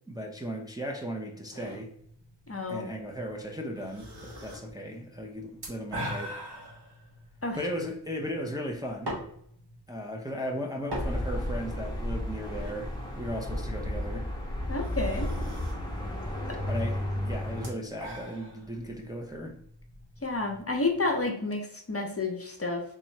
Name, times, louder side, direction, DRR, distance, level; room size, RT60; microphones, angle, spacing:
voice 1, 0.1-1.9 2.7-6.4 7.5-9.2 9.9-14.3 15.0-15.2 16.7-19.6, equal, 10° right, 0 dB, 0.6 m, -36 dB
sound 1, 1.5-21.2, equal, 60° right, 1.3 m, -44 dB
voice 2, 2.5-2.9 7.4-7.6 14.7-15.3 16.5-16.6 20.2-22.8, left 3 dB, 30° left, 3 dB, 0.7 m, -30 dB
sound 2, 10.9-17.7, left 1 dB, 10° left, 1.0 m, -33 dB
3.6 x 2.9 x 3.2 m, 0.68 s
wide cardioid pair, 50°, 44 cm